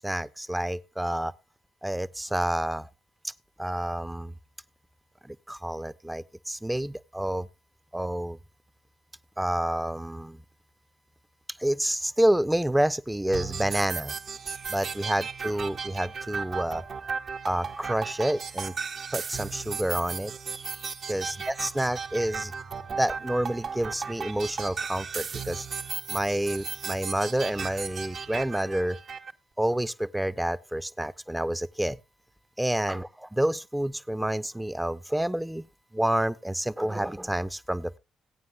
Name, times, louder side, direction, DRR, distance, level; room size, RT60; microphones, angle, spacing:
voice 1, 0.0-1.3 1.8-2.9 3.2-3.3 3.6-4.3 5.3-7.5 7.9-8.4 9.4-10.4 11.6-14.2 14.7-16.8 17.4-18.7 19.1-20.3 21.1-22.5 23.0-25.7 26.1-29.0 29.6-32.0 32.6-35.7 35.9-38.0, right 1 dB, 10° right, 0.6 m, -28 dB
sound 1, 13.3-29.3, right 5 dB, 50° right, 0.8 m, -36 dB
17.0 x 9.4 x 2.4 m
hypercardioid pair, 45°, 0 cm